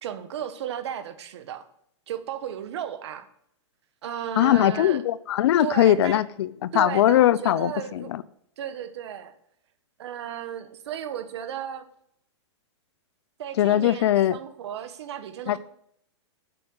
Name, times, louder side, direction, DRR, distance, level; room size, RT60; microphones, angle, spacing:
voice 1, 0.0-1.6 2.1-3.3 4.0-5.0 5.6-6.2 6.7-8.1 8.6-9.3 10.0-11.8 13.4-15.6, right 9 dB, 65° right, 1.3 m, -34 dB
voice 2, 4.4-8.2 13.6-14.4 15.5-15.6, left 12 dB, 60° left, 0.6 m, -21 dB
7.7 x 6.3 x 8.0 m
hypercardioid pair, 140°, 15 cm